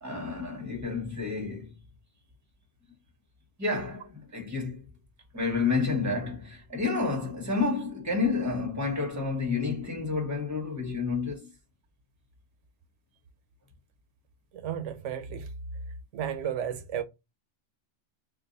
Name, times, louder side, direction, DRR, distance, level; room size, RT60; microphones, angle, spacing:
voice 1, 0.0-1.7 3.6-4.8 5.3-11.5, left 4 dB, 15° right, 0.9 m, -30 dB
voice 2, 14.5-15.5 16.1-17.0, right 9 dB, 90° right, 1.0 m, -33 dB
2.5 x 2.5 x 3.8 m
omnidirectional pair, 1.2 m